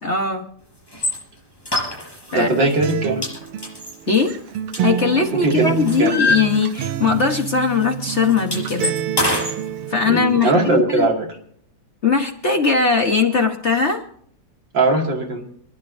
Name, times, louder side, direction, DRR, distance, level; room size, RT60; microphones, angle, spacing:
voice 1, 0.0-0.5 2.3-2.5 4.1-4.3 4.8-9.0 9.9-11.1 12.0-14.0, left 5 dB, 40° left, 3 dB, 1.1 m, -20 dB
sound 1, 0.9-1.2 1.6-2.4 2.7-2.9 3.2-5.3 5.6-7.1 7.3-7.5 7.8-9.6, left 2 dB, 10° left, 5.1 m, -24 dB
voice 2, 2.3-3.3 5.3-5.7 6.0-6.1 10.0-11.3 14.7-15.5, right 2 dB, 55° right, 0 dB, 3.0 m, -19 dB
Acoustic guitar, 2.8-10.8, right 10 dB, 85° right, 1.6 m, -28 dB
28.0 x 10.5 x 2.7 m, 0.63 s
omnidirectional pair, 2.4 m